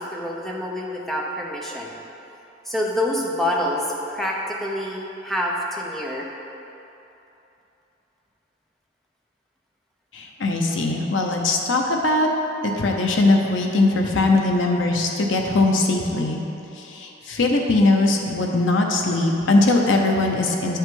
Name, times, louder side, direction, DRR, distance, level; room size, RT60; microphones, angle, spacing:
voice 1, 0.0-2.0 2.6-6.3, left 1 dB, ahead, -3 dB, 0.7 m, -27 dB
voice 2, 10.1-12.3 12.6-16.4 16.8-20.8, left 2 dB, 85° left, 1 dB, 0.8 m, -20 dB
9.6 x 5.5 x 3.8 m, 3.0 s
head